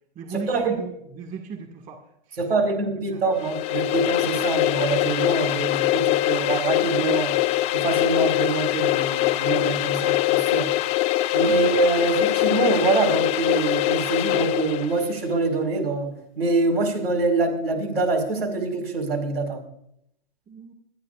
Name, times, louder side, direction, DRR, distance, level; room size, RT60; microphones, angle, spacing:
voice 1, 0.2-2.0 2.3-2.4 3.1-3.2 11.5-11.6 20.5-20.7, right 5 dB, 25° right, 2 dB, 1.9 m, -36 dB
voice 2, 2.4-7.4 7.7-10.7 11.3-19.6, right 3 dB, 75° right, 3 dB, 4.7 m, -25 dB
sound 1, 3.3-15.0, left 16 dB, 20° left, 0.4 m, -23 dB
28.0 x 10.0 x 2.5 m, 0.76 s
hypercardioid pair, 130°, 30 cm